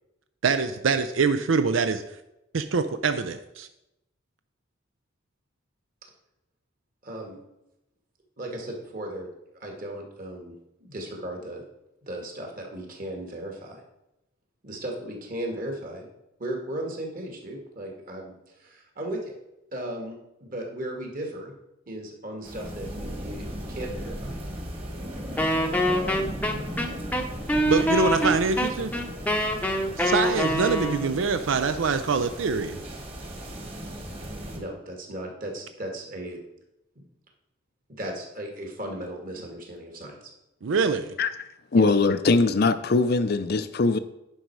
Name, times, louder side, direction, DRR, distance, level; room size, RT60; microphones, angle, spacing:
voice 1, 0.4-2.0 2.5-3.7 27.6-28.9 30.0-32.8 40.6-41.1, right 4 dB, 75° right, 10 dB, 0.5 m, -24 dB
voice 2, 7.0-7.4 8.4-9.3 9.6-10.5 10.8-11.6 12.0-13.8 14.6-16.1 16.4-19.3 19.7-21.5 21.9-24.4 25.8-26.3 34.5-36.4 38.0-40.3 41.7-41.9, right 1 dB, 45° right, 1 dB, 1.9 m, -36 dB
sound 1, 22.4-34.6, equal, 30° right, 1.5 m, -37 dB
Wind instrument woodwind instrument, 25.4-31.2, equal, 10° left, 0.7 m, -25 dB
voice 3, 41.7-44.0, left 3 dB, 50° left, 11 dB, 0.5 m, -21 dB
10.0 x 5.4 x 4.7 m, 0.90 s
head